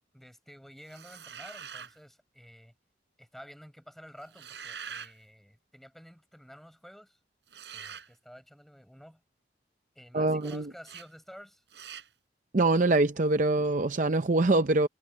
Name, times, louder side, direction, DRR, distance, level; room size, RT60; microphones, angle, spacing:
voice 1, 0.1-2.7 3.2-7.2 7.7-9.2 9.9-11.6, equal, ahead, 5.0 m, -51 dB
sound 1, 0.9-2.0 4.2-5.1 7.5-8.1 10.4-10.6 10.8-11.1 11.7-12.1, right 7 dB, 80° right, 7.2 m, -44 dB
voice 2, 10.1-10.7 12.5-14.9, right 2 dB, 45° right, 0.6 m, -24 dB
head